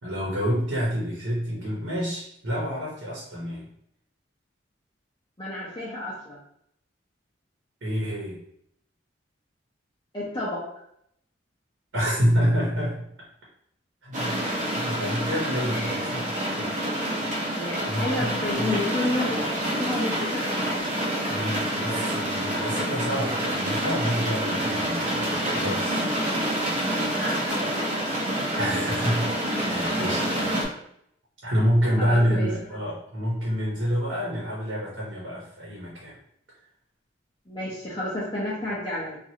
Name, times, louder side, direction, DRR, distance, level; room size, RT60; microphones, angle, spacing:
voice 1, 0.0-3.7 7.8-8.4 11.9-13.0 14.0-14.4 14.7-16.8 17.9-18.7 21.3-27.0 28.5-30.4 31.4-36.2, equal, 70° right, -5 dB, 1.0 m, -28 dB
voice 2, 5.4-6.4 10.1-10.6 15.7-16.0 17.5-19.5 19.8-20.6 27.1-27.8 32.0-32.5 37.5-39.2, left 1 dB, 25° left, -8 dB, 0.7 m, -30 dB
sound 1, 14.1-30.6, right 1 dB, 40° right, 0.8 m, -27 dB
3.0 x 2.5 x 2.8 m, 0.73 s
head